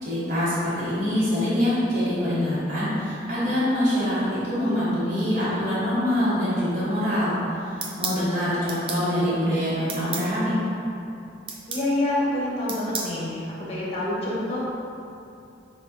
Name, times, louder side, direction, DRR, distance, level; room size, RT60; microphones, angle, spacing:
voice 1, 0.0-10.5, equal, 45° right, -11 dB, 1.2 m, -25 dB
sound 1, 7.8-8.2 8.7-9.0 9.9-10.3 11.5-11.9 12.7-13.1, right 4 dB, 30° right, 0.4 m, -31 dB
voice 2, 11.7-14.7, left 1 dB, 35° left, -6 dB, 0.9 m, -27 dB
6.8 x 2.3 x 2.7 m, 2.7 s
head